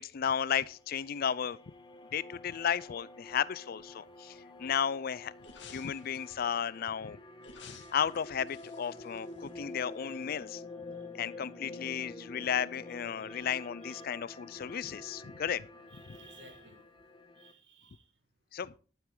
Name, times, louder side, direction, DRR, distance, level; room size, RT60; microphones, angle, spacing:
voice 1, 0.0-1.6 2.1-5.3 5.7-7.2 7.6-10.6 11.1-15.7 16.1-16.2 18.5-18.7, left 8 dB, 55° left, 0.4 m, -34 dB
sound 1, 0.6-17.5, left 2 dB, 25° left, 1.3 m, -48 dB
sound 2, 5.4-6.6 7.4-9.9 10.2-10.3, left 5 dB, 70° left, 2.1 m, -54 dB
voice 2, 13.2-13.5 13.8-14.0 15.3-15.4 15.9-16.8 17.4-18.1, right 4 dB, 70° right, 2.0 m, -58 dB
12.0 x 8.9 x 3.8 m
head